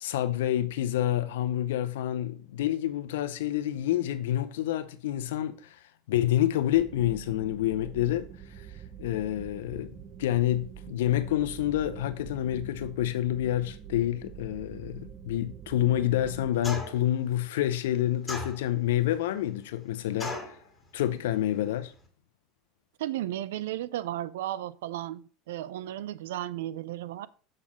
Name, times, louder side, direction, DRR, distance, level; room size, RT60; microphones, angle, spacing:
voice 1, 0.0-5.8 6.1-8.3 9.0-9.9 10.2-20.6 20.9-21.9, left 13 dB, 90° left, 0.7 m, -28 dB
sound 1, 6.7-16.5, right 8 dB, 35° right, 0.7 m, -45 dB
sound 2, 16.6-17.1 18.3-18.9 20.2-20.6, left 2 dB, 10° left, 1.9 m, -36 dB
voice 2, 23.0-27.3, right 13 dB, 90° right, 0.4 m, -34 dB
7.4 x 4.1 x 5.0 m
supercardioid pair, 110°, 0 cm